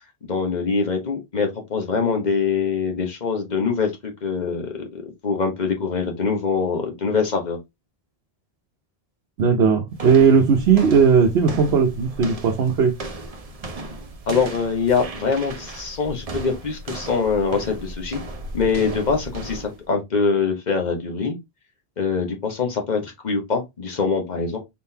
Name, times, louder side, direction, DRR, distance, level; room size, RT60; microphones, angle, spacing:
voice 1, 0.3-7.6 14.3-18.2 18.5-21.3 22.0-24.6, left 5 dB, 45° left, 1.1 m, -24 dB
voice 2, 9.4-12.9, right 6 dB, 80° right, 1.0 m, -17 dB
sound 1, 9.9-19.8, right 2 dB, 40° right, 0.8 m, -36 dB
4.2 x 3.8 x 2.7 m
omnidirectional pair, 1.0 m